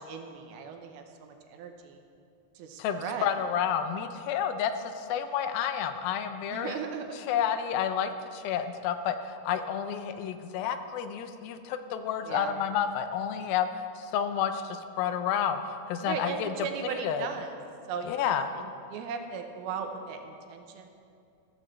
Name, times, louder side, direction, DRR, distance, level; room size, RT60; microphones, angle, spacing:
voice 1, 0.1-2.0 2.6-3.3 6.5-7.2 12.2-12.5 16.0-17.6 17.9-20.9, right 6 dB, 90° right, 5 dB, 2.8 m, -37 dB
voice 2, 2.8-6.8 7.3-16.5 17.0-17.3 18.1-18.5, left 8 dB, 85° left, 9 dB, 2.5 m, -30 dB
15.5 x 14.0 x 3.3 m, 2.6 s
omnidirectional pair, 4.2 m